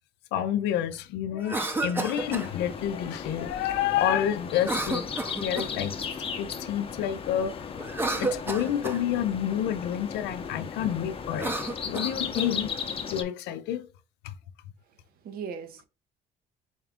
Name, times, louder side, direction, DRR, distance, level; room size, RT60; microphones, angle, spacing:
voice 1, 0.3-5.1 5.4-6.1 6.4-7.7 8.2-11.5 11.8-12.7 13.1-13.9 14.2-14.3, left 10 dB, 90° left, 0.5 m, -29 dB
Cough, 1.4-2.5 4.6-5.8 7.8-9.0 11.3-12.5, right 2 dB, 15° right, 0.6 m, -31 dB
sound 1, 2.1-13.2, left 6 dB, 35° left, 0.7 m, -36 dB
voice 2, 14.8-15.9, right 6 dB, 65° right, 0.7 m, -40 dB
4.3 x 2.4 x 3.4 m
cardioid pair, 110°, 17 cm